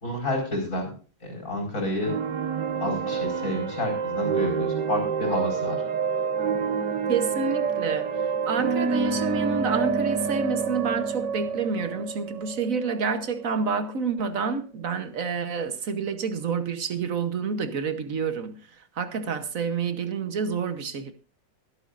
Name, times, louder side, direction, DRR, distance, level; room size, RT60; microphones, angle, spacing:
voice 1, 0.0-0.9 1.2-2.1 2.8-5.8, left 1 dB, 45° left, 3 dB, 5.2 m, -29 dB
sound 1, 2.0-13.7, right 5 dB, 70° right, 1.8 m, -28 dB
voice 2, 7.1-8.1 8.4-18.5 19.0-21.1, right 5 dB, 50° right, 10 dB, 1.3 m, -28 dB
23.0 x 8.3 x 2.5 m, 0.38 s
omnidirectional pair, 2.0 m